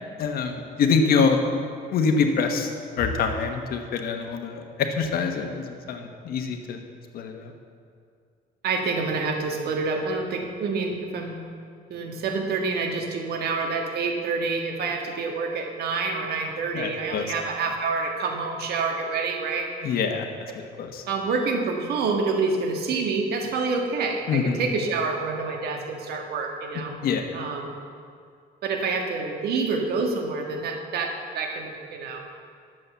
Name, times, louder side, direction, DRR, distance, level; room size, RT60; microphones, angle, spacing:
voice 1, 0.2-1.4 1.9-2.7 3.0-6.8 7.1-7.5 16.7-17.3 19.8-20.2 20.5-21.0 24.3-24.6 27.0-27.3, left 5 dB, 65° left, 5 dB, 1.3 m, -25 dB
voice 2, 8.6-11.4 11.9-19.7 21.1-27.0 27.3-27.7 28.6-32.2, right 4 dB, 70° right, 2 dB, 1.7 m, -27 dB
11.0 x 7.5 x 6.9 m, 2.2 s
cardioid pair, 110°, 17 cm